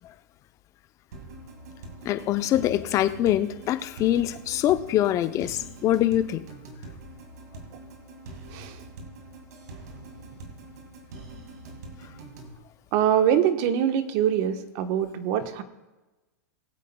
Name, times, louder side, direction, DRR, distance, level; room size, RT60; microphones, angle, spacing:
sound 1, 1.1-12.5, right 2 dB, 80° right, 2.2 m, -44 dB
voice 1, 2.0-6.4, left 12 dB, 35° left, 0.6 m, -24 dB
voice 2, 12.9-15.6, right 9 dB, 50° right, 1.1 m, -24 dB
20.5 x 8.4 x 2.3 m
hypercardioid pair, 120°, 9 cm